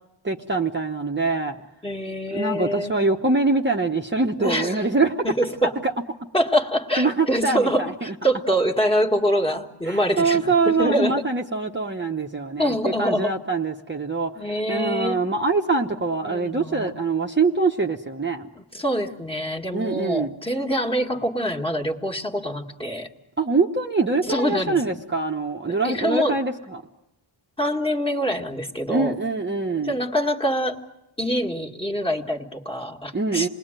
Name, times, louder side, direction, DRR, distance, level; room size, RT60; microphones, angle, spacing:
voice 1, 0.2-1.6 2.3-5.2 7.0-7.7 9.8-18.5 19.7-20.3 23.4-26.8 28.9-30.0 33.1-33.5, right 3 dB, 25° right, 1 dB, 1.0 m, -24 dB
voice 2, 1.8-2.9 4.4-4.8 5.2-5.7 6.3-11.2 12.6-13.3 14.4-15.2 16.2-16.9 18.5-23.1 24.2-25.0 25.8-26.4 27.6-29.2 29.8-30.8 31.2-33.5, equal, 10° left, 3 dB, 1.8 m, -25 dB
28.0 x 20.5 x 9.0 m, 0.92 s
wide cardioid pair, 150°, 47 cm